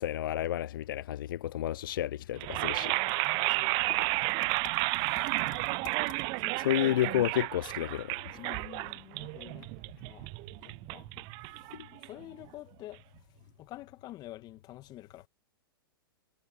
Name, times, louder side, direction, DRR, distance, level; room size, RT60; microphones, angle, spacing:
voice 1, 0.0-2.9 6.6-8.2, left 12 dB, 65° left, 0.5 m, -30 dB
voice 2, 2.4-4.4 4.7-5.7 6.1-7.1 8.3-9.7 10.0-10.3 10.6-11.1 11.9-13.0 13.6-15.3, left 15 dB, 35° left, 2.2 m, -49 dB
sound 1, 2.4-12.4, right 29 dB, 40° right, 0.7 m, -32 dB
figure-of-eight pair, 105°, 12 cm